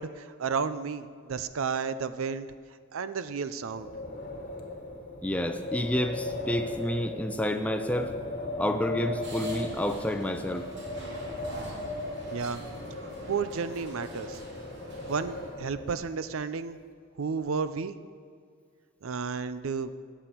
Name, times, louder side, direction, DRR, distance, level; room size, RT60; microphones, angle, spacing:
voice 1, 0.0-2.5 2.9-3.9 12.3-12.6 13.2-14.4 15.1-16.8 17.2-18.0 19.0-19.9, right 5 dB, 75° right, 13 dB, 0.5 m, -32 dB
Wind, 3.6-16.2, left 2 dB, 40° left, 1.3 m, -38 dB
voice 2, 5.2-8.1 8.6-10.7, left 1 dB, 5° left, 7 dB, 0.5 m, -29 dB
sound 1, 9.2-15.5, right 1 dB, 55° right, 2.7 m, -46 dB
17.0 x 7.0 x 4.6 m, 2.1 s
head